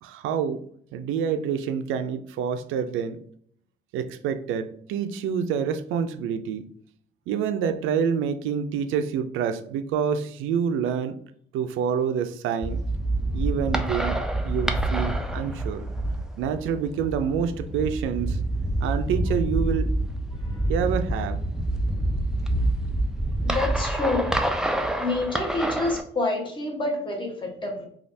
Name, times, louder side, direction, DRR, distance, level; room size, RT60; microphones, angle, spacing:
voice 1, 0.0-0.6 0.9-3.2 3.9-6.7 7.3-11.2 11.5-12.8 13.3-15.9 16.4-18.4 18.8-20.0 20.7-21.4, right 7 dB, 80° right, 9 dB, 0.4 m, -27 dB
sound 1, 12.6-26.0, right 1 dB, 5° right, 0.3 m, -27 dB
voice 2, 23.4-24.3 25.0-27.8, left 2 dB, 25° left, 1 dB, 1.0 m, -28 dB
3.2 x 2.4 x 2.6 m, 0.63 s
cardioid pair, 90°, 20 cm